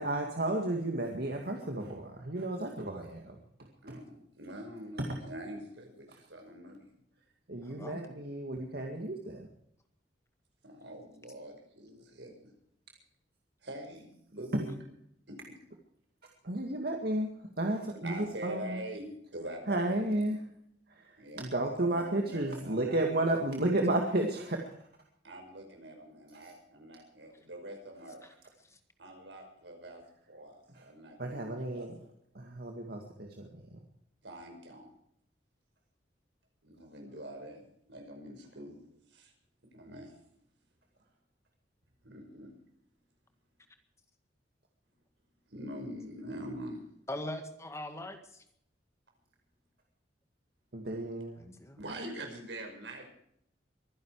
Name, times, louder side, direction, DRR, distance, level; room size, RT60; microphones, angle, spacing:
voice 1, 0.0-3.4 3.9-4.0 5.0-5.2 7.5-9.5 14.5-14.7 16.4-18.8 19.7-20.4 20.9-24.7 30.7-30.9 31.2-31.9 32.3-33.8 50.7-51.4, right 1 dB, 60° right, 2 dB, 2.1 m, -33 dB
voice 2, 3.8-6.9 10.6-12.5 13.6-14.8 15.3-15.5 18.0-20.3 21.2-23.3 25.2-28.2 29.0-30.0 30.3-32.1 34.2-34.9 36.6-38.8 39.1-39.3 39.7-40.1 42.0-42.5 45.5-46.8 51.8-53.1, right 1 dB, 85° right, 3 dB, 5.6 m, -44 dB
voice 3, 7.6-8.0 28.2-28.3 28.7-28.8 47.1-48.4 51.4-51.8, left 1 dB, 15° left, 7 dB, 1.9 m, -41 dB
23.5 x 11.0 x 4.9 m, 0.71 s
head